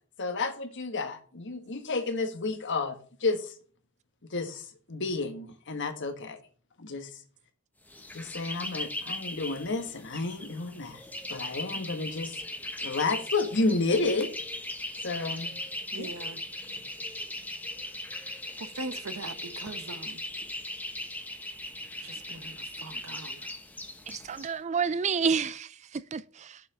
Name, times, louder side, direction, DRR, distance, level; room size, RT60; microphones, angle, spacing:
voice 1, 0.2-3.5 4.3-6.4 6.8-7.1 8.1-11.0 11.3-12.4 12.8-14.3 15.0-15.5 15.9-16.1, left 3 dB, 60° left, 1.4 m, -31 dB
sound 1, 7.9-24.5, left 1 dB, 10° left, 1.0 m, -39 dB
voice 2, 15.9-16.4 18.6-20.2 22.0-23.5, right 3 dB, 85° right, 1.0 m, -41 dB
voice 3, 24.1-26.6, right 6 dB, 35° right, 0.4 m, -30 dB
7.3 x 5.8 x 6.4 m
head